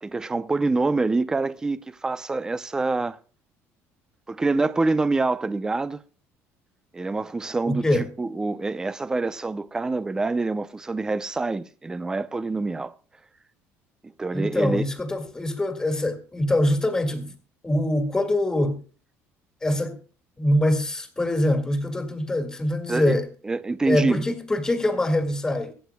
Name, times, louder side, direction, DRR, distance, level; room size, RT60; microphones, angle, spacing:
voice 1, 0.0-3.2 4.3-6.0 6.9-7.8 8.2-12.9 14.2-14.9 22.9-23.2 23.4-24.2, right 3 dB, 10° right, 0.6 m, -26 dB
voice 2, 7.7-8.1 14.3-17.3 17.6-18.8 19.6-20.0 20.4-23.3 23.9-25.7, left 1 dB, 10° left, 1.9 m, -24 dB
24.0 x 8.2 x 2.2 m
cardioid pair, 150°, 5 cm